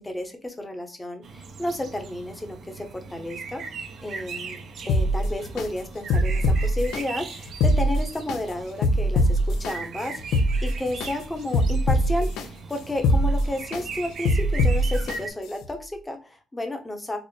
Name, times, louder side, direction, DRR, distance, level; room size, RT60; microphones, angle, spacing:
voice 1, 0.0-3.6 4.0-4.6 4.8-17.2, left 1 dB, 15° left, 5 dB, 0.8 m, -32 dB
sound 1, 1.2-15.3, right 4 dB, 65° right, 0.5 m, -39 dB
sound 2, 4.9-5.7 6.1-7.0 7.5-8.4 8.8-9.7 10.2-11.1 11.5-12.4 12.9-13.8 14.2-15.2 15.6-15.7, equal, 90° left, 0.5 m, -22 dB
4.0 x 2.0 x 3.1 m, 0.33 s
cardioid pair, 90°, 0 cm